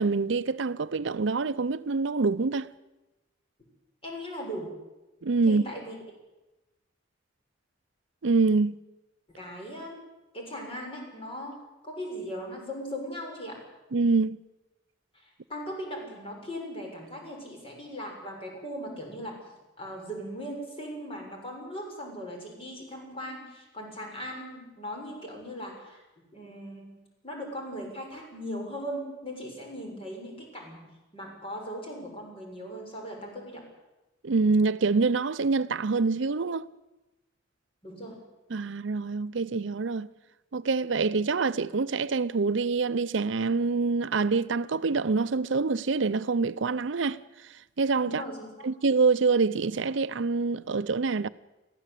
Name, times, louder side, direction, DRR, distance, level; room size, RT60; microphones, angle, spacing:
voice 1, 0.0-2.7 5.2-5.6 8.2-8.8 13.9-14.4 34.2-36.7 38.5-40.1 40.5-48.2 48.6-51.3, right 4 dB, 70° right, 0.6 m, -26 dB
voice 2, 4.0-4.7 5.5-5.9 9.4-10.0 10.3-13.6 15.1-19.4 19.8-26.0 26.3-26.9 27.2-30.8 31.1-33.6 37.8-38.2 48.0-48.5, equal, 30° left, 6.9 m, -38 dB
22.5 x 15.5 x 8.4 m
head